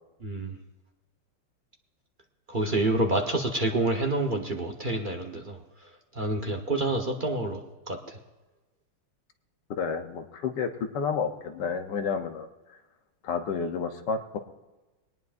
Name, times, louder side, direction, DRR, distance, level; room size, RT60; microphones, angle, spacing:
voice 1, 0.2-0.5 2.5-5.6 6.2-7.6 7.9-8.0, right 2 dB, 40° right, 2 dB, 0.7 m, -27 dB
voice 2, 9.7-12.5 13.2-14.4, left 5 dB, 60° left, 6 dB, 1.3 m, -30 dB
21.0 x 19.0 x 2.6 m, 1.2 s
omnidirectional pair, 2.4 m